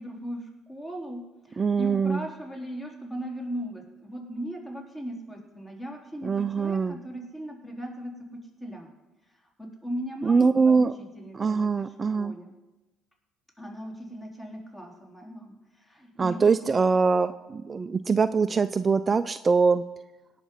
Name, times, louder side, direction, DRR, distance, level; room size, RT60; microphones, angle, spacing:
voice 1, 0.0-8.9 9.3-11.9 12.1-12.5 13.6-16.7, equal, 15° left, 0 dB, 3.8 m, -38 dB
voice 2, 1.6-2.2 6.2-7.0 10.2-10.9 11.3-12.3 16.2-19.8, right 5 dB, 30° right, 12 dB, 0.4 m, -23 dB
18.0 x 6.0 x 5.5 m, 1.1 s
hypercardioid pair, 60°, 0 cm